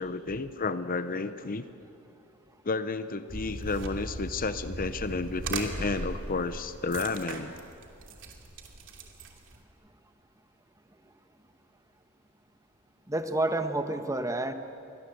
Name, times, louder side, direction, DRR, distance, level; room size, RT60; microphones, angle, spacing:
voice 1, 0.0-1.7 2.6-7.5, left 3 dB, 40° left, 11 dB, 0.9 m, -31 dB
sound 1, 3.3-9.6, right 2 dB, 60° right, 2.8 m, -38 dB
voice 2, 13.1-14.5, right 2 dB, 15° right, 7 dB, 1.4 m, -29 dB
29.0 x 23.5 x 7.9 m, 2.5 s
head